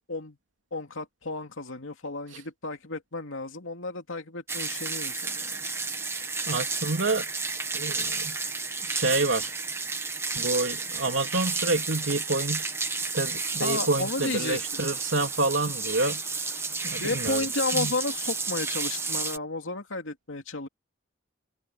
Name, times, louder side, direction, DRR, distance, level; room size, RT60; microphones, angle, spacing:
voice 1, 0.7-5.7 13.6-14.8 17.0-20.7, left 3 dB, 90° left, 2.7 m, -33 dB
sound 1, 4.5-19.4, right 4 dB, 15° right, 1.3 m, -31 dB
voice 2, 6.1-7.2 7.7-8.4 8.8-9.5 10.3-12.6 13.1-16.5 16.8-17.4 17.7-17.9, right 2 dB, 75° right, 3.3 m, -28 dB
head